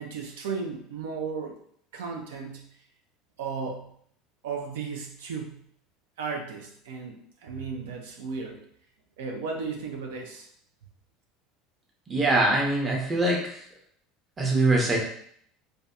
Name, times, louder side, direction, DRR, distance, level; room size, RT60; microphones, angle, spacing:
voice 1, 0.0-1.6 1.9-2.7 3.4-3.9 4.4-5.6 6.2-8.6 9.2-10.5, right 5 dB, 85° right, 1 dB, 0.4 m, -35 dB
voice 2, 12.1-13.4 14.4-15.0, right 2 dB, 20° right, -1 dB, 0.7 m, -22 dB
2.6 x 2.2 x 2.3 m, 0.65 s
supercardioid pair, 100°, 0 cm